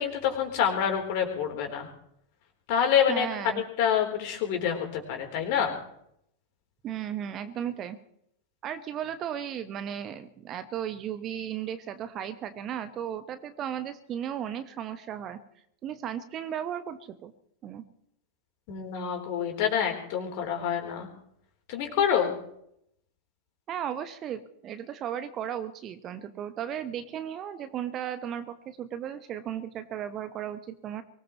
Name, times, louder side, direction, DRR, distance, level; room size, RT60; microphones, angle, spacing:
voice 1, 0.0-1.9 2.7-3.3 3.8-5.8 18.7-21.1 21.7-22.3, left 8 dB, 45° left, 3 dB, 3.7 m, -27 dB
voice 2, 3.1-3.6 6.8-8.0 8.6-15.4 15.8-17.3 17.6-17.8 23.7-31.0, right 9 dB, 30° right, 11 dB, 1.1 m, -35 dB
23.5 x 18.0 x 3.1 m, 0.73 s
figure-of-eight pair, 90°, 0 cm